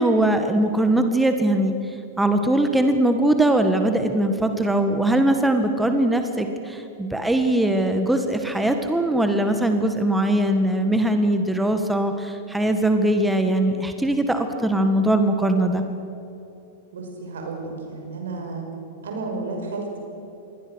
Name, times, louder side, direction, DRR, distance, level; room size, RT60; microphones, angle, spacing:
voice 1, 0.0-1.7 2.2-15.8, right 1 dB, 5° right, 6 dB, 1.8 m, -21 dB
voice 2, 16.9-18.7 19.0-20.0, right 3 dB, 70° right, 3 dB, 5.8 m, -32 dB
27.5 x 21.5 x 6.5 m, 2.8 s
hypercardioid pair, 100°, 0 cm